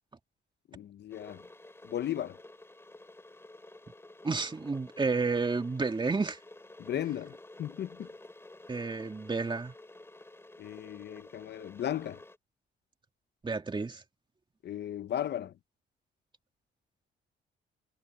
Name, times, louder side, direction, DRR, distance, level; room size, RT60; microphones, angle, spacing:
voice 1, 0.7-1.4 1.8-2.4 6.8-8.1 10.6-12.2 14.6-15.5, left 11 dB, 60° left, 0.7 m, -36 dB
Water / Boiling, 1.1-12.4, left 2 dB, 10° left, 3.8 m, -52 dB
voice 2, 4.2-6.4 8.7-9.7 13.4-14.0, right 4 dB, 25° right, 2.3 m, -31 dB
cardioid pair, 90°, 20 cm